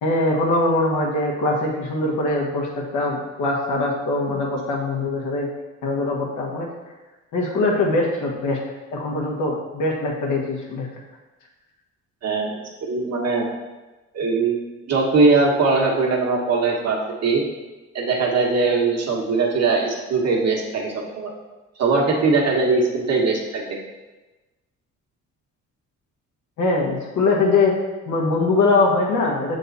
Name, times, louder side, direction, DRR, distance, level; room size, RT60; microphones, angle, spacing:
voice 1, 0.0-5.5 5.8-6.7 7.3-8.6 8.9-10.9 26.6-27.7 28.1-29.6, left 2 dB, 75° left, -2 dB, 1.5 m, -22 dB
voice 2, 12.2-13.5 14.1-14.6 14.9-17.4 17.9-21.3 21.8-23.8, right 3 dB, 55° right, -1 dB, 1.4 m, -21 dB
6.8 x 3.9 x 4.0 m, 1.2 s
cardioid pair, 90°, 30 cm